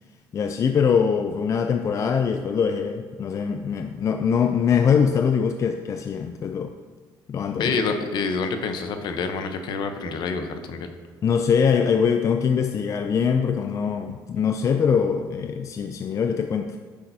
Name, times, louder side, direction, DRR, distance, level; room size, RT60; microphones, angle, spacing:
voice 1, 0.3-6.7 7.3-7.8 11.2-16.8, left 6 dB, 40° left, 7 dB, 0.4 m, -23 dB
voice 2, 7.6-10.9, left 4 dB, 60° left, 7 dB, 0.8 m, -27 dB
10.0 x 6.4 x 2.8 m, 1.5 s
cardioid pair, 100°, 8 cm